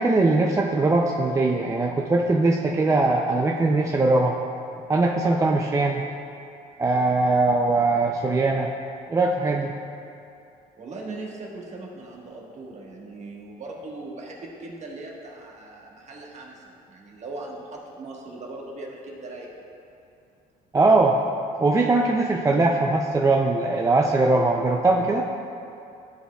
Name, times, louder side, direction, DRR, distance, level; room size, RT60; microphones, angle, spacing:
voice 1, 0.0-4.4 4.9-6.0 6.8-8.7 9.1-9.7 20.7-21.2 21.6-25.3, right 2 dB, 20° right, 1 dB, 0.3 m, -21 dB
voice 2, 10.8-19.6, right 2 dB, 40° right, -2 dB, 1.3 m, -39 dB
13.0 x 4.4 x 2.3 m, 2.5 s
cardioid pair, 110°, 17 cm